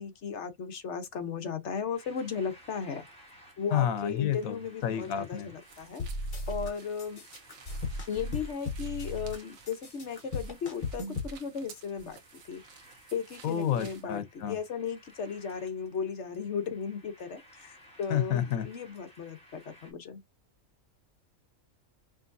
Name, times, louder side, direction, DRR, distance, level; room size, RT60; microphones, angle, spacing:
voice 1, 0.0-3.0 3.6-6.0 6.5-7.2 8.1-12.2 12.5-12.6 13.1-20.2, left 6 dB, 55° left, 1.1 m, -36 dB
sound 1, 1.9-19.9, equal, 5° left, 2.0 m, -58 dB
voice 2, 3.7-5.5 13.4-14.6 18.1-18.7, left 10 dB, 75° left, 1.2 m, -30 dB
sound 2, 5.6-14.1, right 6 dB, 75° right, 1.4 m, -55 dB
sound 3, 6.0-6.7 7.0-9.4 9.7-11.3, left 2 dB, 35° left, 1.4 m, -36 dB
5.0 x 3.2 x 2.6 m
omnidirectional pair, 1.5 m